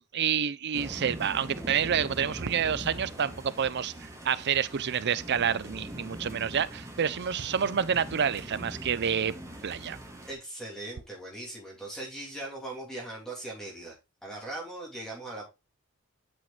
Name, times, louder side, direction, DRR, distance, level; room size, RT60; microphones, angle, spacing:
voice 1, 0.1-9.3 9.6-10.0, right 7 dB, 50° right, 0.5 m, -28 dB
sound 1, 0.7-10.3, right 1 dB, 15° right, 1.7 m, -42 dB
voice 2, 10.3-14.0 14.2-15.5, right 2 dB, 5° left, 2.8 m, -39 dB
8.9 x 5.9 x 2.4 m
head